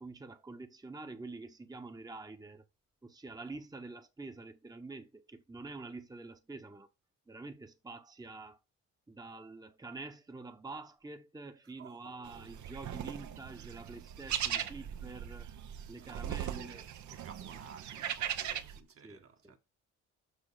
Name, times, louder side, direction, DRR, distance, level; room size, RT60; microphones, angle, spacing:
voice 1, 0.0-2.6 3.0-6.9 7.3-8.6 9.1-15.5 15.9-16.9 19.0-19.6, right 3 dB, 15° right, 1.0 m, -47 dB
voice 2, 11.8-12.5 16.0-19.6, right 6 dB, 50° right, 1.5 m, -55 dB
sound 1, 12.2-18.8, right 10 dB, 70° right, 1.1 m, -39 dB
6.5 x 6.2 x 4.9 m
cardioid pair, 90°, 30 cm